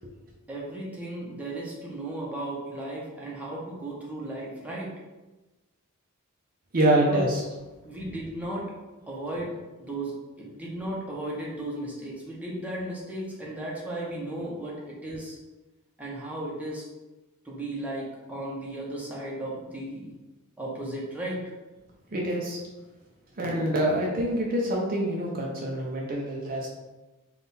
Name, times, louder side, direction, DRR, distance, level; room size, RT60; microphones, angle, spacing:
voice 1, 0.5-4.9 7.1-7.3 7.8-8.7 9.1-15.4 16.0-16.8 17.4-20.1 20.6-21.4, right 1 dB, 5° right, -5 dB, 0.8 m, -35 dB
voice 2, 6.7-7.4 22.1-22.6 23.4-26.7, right 1 dB, 40° right, -2 dB, 0.5 m, -25 dB
3.6 x 2.3 x 4.0 m, 1.1 s
head